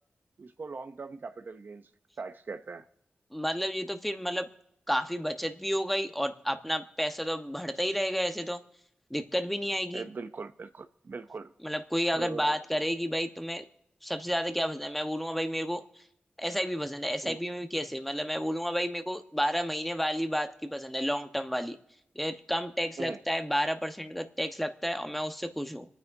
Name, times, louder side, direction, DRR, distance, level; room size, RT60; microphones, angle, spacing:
voice 1, 0.4-1.9 2.2-2.9 9.9-11.5 12.1-12.6 17.2-17.4 23.0-23.2, right 4 dB, 60° right, 0.6 m, -40 dB
voice 2, 3.3-4.5 4.9-8.6 9.1-10.0 11.6-13.7 14.0-15.8 16.4-21.8 22.1-25.9, equal, 5° left, 1.1 m, -31 dB
27.0 x 9.4 x 2.7 m
cardioid pair, 50°, 4 cm